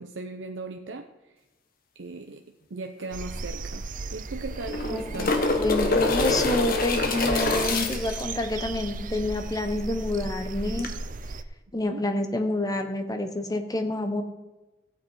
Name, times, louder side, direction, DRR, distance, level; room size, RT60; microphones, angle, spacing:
voice 1, 0.0-1.4 2.0-2.4 2.7-5.5 11.8-12.1, right 3 dB, 90° right, 5 dB, 0.7 m, -38 dB
sound 1, 3.0-3.1 3.4-3.5 4.5-8.2 10.8-10.9, left 3 dB, 55° left, 1.3 m, -25 dB
sound 2, 3.1-11.4, right 3 dB, 45° right, 0.5 m, -35 dB
voice 2, 4.9-10.9 11.7-14.2, left 2 dB, 20° left, 6 dB, 1.0 m, -28 dB
15.0 x 8.4 x 4.6 m, 1.1 s
head